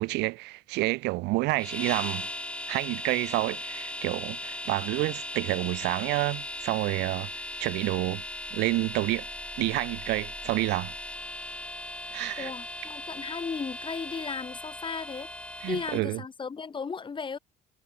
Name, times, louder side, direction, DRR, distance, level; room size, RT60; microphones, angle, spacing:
voice 1, 0.0-2.3 2.7-7.3 7.6-8.2 8.5-9.3 9.6-10.9 12.1-12.5 15.6-16.2, right 22 dB, 90° right, 0.7 m, -29 dB
sound 1, 1.6-16.0, left 1 dB, 5° left, 2.7 m, -38 dB
voice 2, 12.4-15.3 15.7-17.4, left 5 dB, 30° left, 2.3 m, -35 dB
cardioid pair, 110°, 17 cm